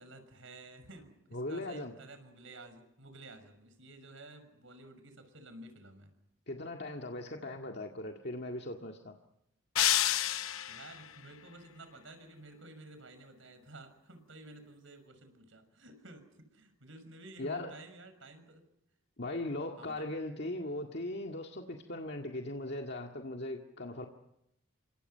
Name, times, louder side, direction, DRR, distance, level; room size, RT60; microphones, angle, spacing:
voice 1, 0.0-6.1 10.7-18.6 19.8-20.1, right 2 dB, 65° right, 9 dB, 6.2 m, -52 dB
voice 2, 1.3-1.9 6.5-9.1 17.4-17.7 19.2-24.1, left 1 dB, 50° left, 2 dB, 2.0 m, -39 dB
sound 1, 9.8-11.0, left 12 dB, 80° left, 0.9 m, -29 dB
29.5 x 25.5 x 5.7 m, 0.82 s
head